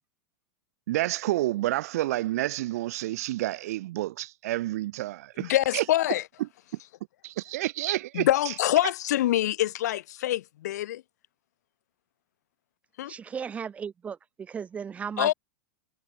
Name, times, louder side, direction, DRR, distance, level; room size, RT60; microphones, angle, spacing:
voice 1, 0.9-5.8 7.2-8.3, right 16 dB, 65° right, 0.7 m, -29 dB
voice 2, 5.4-6.2 8.1-11.0 13.0-13.1 15.2-15.3, left 14 dB, 75° left, 0.8 m, -25 dB
voice 3, 13.1-15.3, right 7 dB, 15° right, 0.9 m, -36 dB
supercardioid pair, 155°, 9 cm